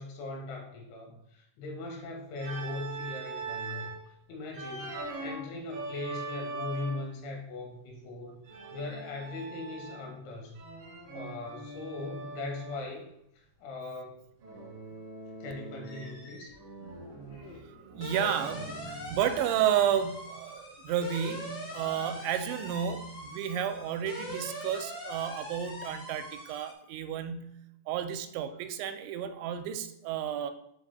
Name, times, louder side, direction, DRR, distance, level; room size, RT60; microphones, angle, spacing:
voice 1, 0.0-3.9 4.3-8.4 8.7-10.6 11.1-13.1 13.6-14.2 15.4-16.5, left 2 dB, 90° left, 1 dB, 3.9 m, -39 dB
Organ, 2.4-4.0 4.5-7.2 8.4-10.2 10.6-12.9 14.4-16.2 16.5-19.3, right 3 dB, 65° right, 1.6 m, -42 dB
sound 1, 15.8-16.5 16.8-26.7, equal, 60° left, 1.2 m, -42 dB
voice 2, 17.3-27.6 27.9-30.5, right 9 dB, 90° right, 9 dB, 2.9 m, -32 dB
14.0 x 5.2 x 2.2 m, 0.75 s
omnidirectional pair, 5.2 m